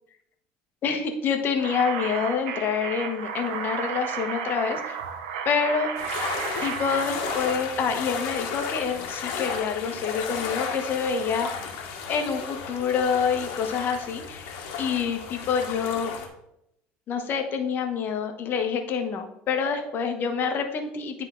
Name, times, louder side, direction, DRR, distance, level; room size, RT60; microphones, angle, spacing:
voice 1, 0.8-5.0 5.4-5.9 6.6-11.6 12.1-14.5 14.8-16.1 17.1-21.3, left 6 dB, 45° left, 5 dB, 1.2 m, -27 dB
sound 1, 1.6-7.5, right 7 dB, 90° right, 0.8 m, -33 dB
sound 2, 6.0-16.3, left 6 dB, 75° left, 1.4 m, -34 dB
9.7 x 3.7 x 3.8 m, 0.79 s
supercardioid pair, 105°, 5 cm